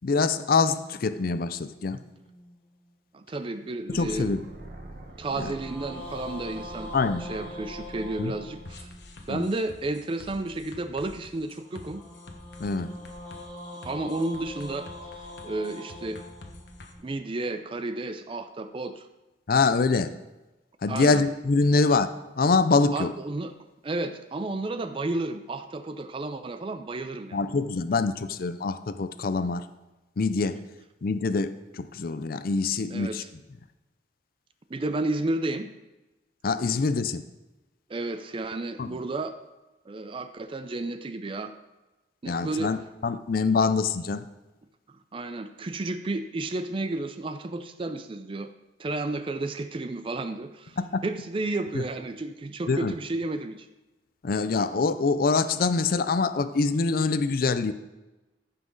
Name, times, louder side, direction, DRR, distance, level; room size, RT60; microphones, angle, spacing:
voice 1, 0.0-2.0 3.9-4.4 5.4-5.5 6.9-7.2 8.2-8.3 9.3-9.5 12.6-13.0 19.5-20.1 20.8-22.1 22.4-23.1 27.3-29.6 30.2-30.7 31.0-33.2 36.4-37.2 38.8-39.0 42.3-44.2 50.8-51.0 51.7-51.8 52.7-52.9 54.2-57.7, left 4 dB, 55° left, 12 dB, 0.5 m, -25 dB
sound 1, 0.5-3.0 5.2-9.4 11.5-17.7, left 1 dB, 10° left, 2.0 m, -44 dB
voice 2, 3.1-4.3 5.2-6.9 7.2-8.9 9.3-12.0 13.8-16.2 17.0-19.0 20.9-21.2 22.9-23.5 23.8-27.4 32.9-33.3 34.7-35.7 37.9-39.4 39.9-41.5 42.2-42.7 45.1-48.5 48.8-53.7, right 2 dB, 30° right, 9 dB, 0.4 m, -32 dB
sound 2, 3.9-9.9, right 1 dB, 55° right, 1.1 m, -45 dB
sound 3, 8.7-16.9, left 2 dB, 70° left, 1.1 m, -48 dB
14.0 x 5.9 x 3.9 m, 1.1 s
head